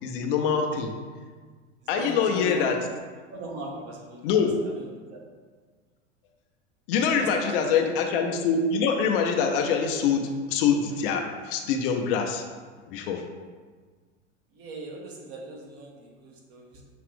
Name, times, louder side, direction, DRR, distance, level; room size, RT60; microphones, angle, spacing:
voice 1, 0.0-0.9 1.9-2.8 4.2-4.5 6.9-12.4 12.9-13.2, left 6 dB, 50° left, 3 dB, 0.6 m, -24 dB
voice 2, 1.9-2.8 3.3-5.2 7.1-7.9 14.5-16.8, right 1 dB, 40° right, -1 dB, 1.1 m, -40 dB
5.8 x 2.4 x 3.6 m, 1.5 s
hypercardioid pair, 90°, 36 cm